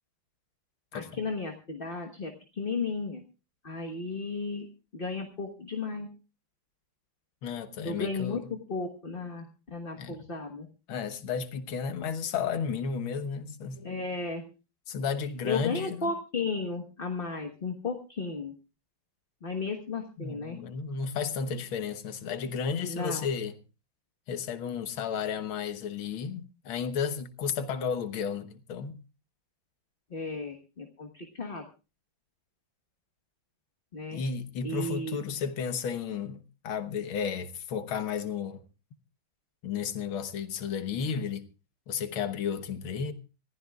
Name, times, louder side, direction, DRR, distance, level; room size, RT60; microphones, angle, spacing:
voice 1, 0.9-3.2 3.6-4.7 4.9-6.1 7.8-9.5 9.7-10.7 13.8-14.5 15.4-18.5 19.4-20.6 22.9-23.2 30.1-31.7 33.9-34.2 34.6-35.2, left 4 dB, 30° left, 1.3 m, -34 dB
voice 2, 7.4-8.4 10.0-10.2 10.9-14.0 14.9-16.1 20.2-23.5 24.3-29.0 34.1-38.6 39.6-41.4 41.9-43.1, left 6 dB, 85° left, 2.0 m, -33 dB
25.5 x 15.0 x 2.4 m
omnidirectional pair, 2.2 m